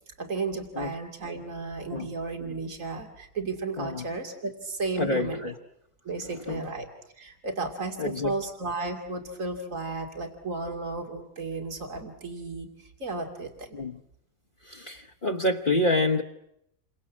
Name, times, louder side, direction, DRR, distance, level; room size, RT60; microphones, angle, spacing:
voice 1, 0.1-5.5 6.0-6.9 7.2-13.8, right 3 dB, 75° right, 4 dB, 3.0 m, -34 dB
voice 2, 5.0-5.5 6.5-6.6 8.0-8.3 13.7-14.0 14.6-16.2, left 2 dB, 40° left, 1 dB, 1.5 m, -27 dB
29.5 x 24.5 x 7.4 m, 0.78 s
omnidirectional pair, 1.4 m